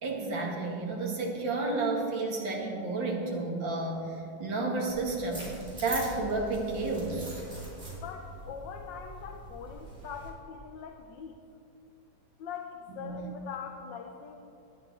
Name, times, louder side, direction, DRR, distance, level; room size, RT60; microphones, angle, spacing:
voice 1, 0.0-5.5 5.8-7.4 12.9-13.2, right 3 dB, 70° right, -1 dB, 2.8 m, -31 dB
sound 1, 4.9-10.3, right 1 dB, 20° right, 3.7 m, -43 dB
voice 2, 7.9-11.4 12.4-14.5, left 6 dB, 70° left, 4 dB, 1.4 m, -42 dB
18.0 x 11.0 x 4.4 m, 2.7 s
omnidirectional pair, 2.2 m